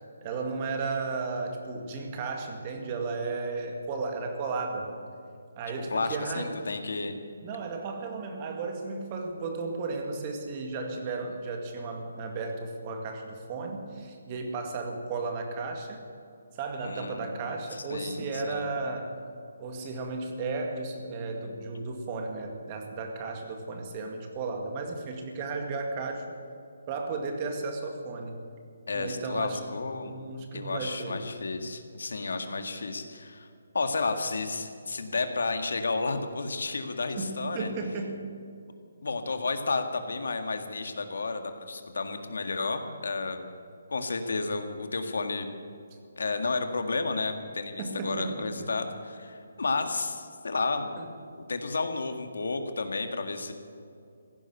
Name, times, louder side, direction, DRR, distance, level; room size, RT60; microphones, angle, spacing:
voice 1, 0.2-4.9 5.6-6.5 7.4-16.0 16.5-19.1 19.6-26.2 26.9-28.4 29.0-29.6 30.0-31.2 37.2-38.3 47.8-48.7 51.0-51.1, right 3 dB, 25° right, 3 dB, 2.1 m, -34 dB
voice 2, 5.9-7.1 16.8-17.3 17.7-18.7 28.9-30.2 30.5-33.5 33.7-37.7 39.0-43.5 43.9-45.5 46.2-51.0 51.3-53.5, left 3 dB, 75° left, 7 dB, 1.8 m, -32 dB
16.0 x 11.0 x 8.2 m, 2.5 s
hypercardioid pair, 160°, 0 cm